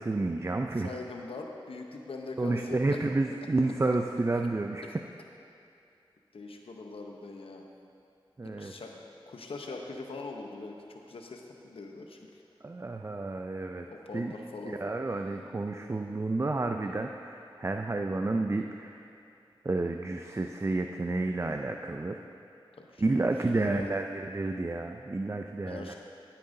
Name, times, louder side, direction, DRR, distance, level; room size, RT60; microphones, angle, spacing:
voice 1, 0.0-0.9 2.4-4.9 8.4-8.7 12.6-13.9 14.1-14.3 14.7-19.1 19.6-22.2 23.0-25.9, right 2 dB, 30° right, 4 dB, 0.4 m, -30 dB
voice 2, 0.8-3.0 4.8-4.9 6.3-7.6 8.4-8.9 9.3-12.3 13.9-14.8 22.8-24.0 25.7-25.9, left 3 dB, 85° left, 2 dB, 0.8 m, -42 dB
13.0 x 8.6 x 2.7 m, 2.6 s
wide cardioid pair, 50°, 9 cm